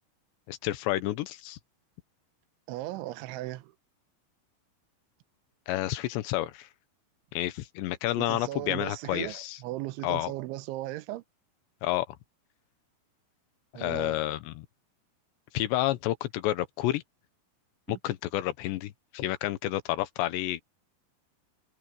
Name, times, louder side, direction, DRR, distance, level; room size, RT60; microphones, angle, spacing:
voice 1, 0.5-1.6 5.7-6.7 7.3-9.6 10.0-10.3 11.8-12.2 13.7-14.7 15.5-17.0 17.9-20.6, left 15 dB, 75° left, 3.2 m, -30 dB
voice 2, 2.7-3.7 8.2-11.2 13.7-14.2 17.9-18.0, right 17 dB, 90° right, 3.3 m, -37 dB
omnidirectional pair, 5.3 m